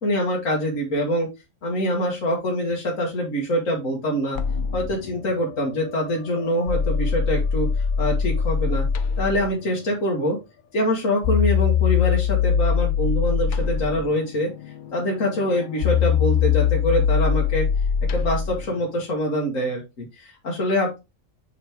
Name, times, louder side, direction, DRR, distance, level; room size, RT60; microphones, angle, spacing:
voice 1, 0.0-1.3 1.6-4.4 4.7-8.9 9.2-10.4 10.7-14.5 14.9-17.7 18.1-21.0, equal, 75° left, -2 dB, 2.0 m, -24 dB
sound 1, 4.4-9.5 11.2-18.7, left 7 dB, 55° left, 0.6 m, -22 dB
7.1 x 4.5 x 3.4 m, 0.24 s
omnidirectional pair, 1.4 m